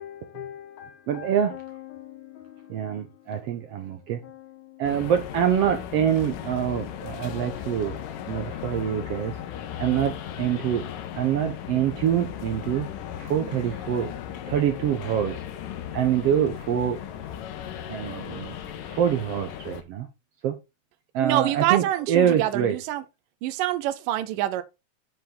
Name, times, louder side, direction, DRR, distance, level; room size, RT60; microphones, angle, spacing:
voice 1, 0.0-5.0, left 11 dB, 75° left, 2.0 m, -44 dB
voice 2, 1.1-1.6 2.7-4.2 4.8-8.0 8.3-9.4 9.8-10.9 11.1-12.9 13.2-14.1 14.5-15.5 15.9-17.0 17.9-20.1 20.4-20.6 21.1-22.8, right 9 dB, 75° right, 1.4 m, -25 dB
sound 1, 4.8-19.8, left 10 dB, 90° left, 2.5 m, -36 dB
voice 3, 21.2-23.0 23.4-24.6, right 14 dB, 90° right, 2.4 m, -26 dB
7.3 x 4.8 x 3.8 m
omnidirectional pair, 3.7 m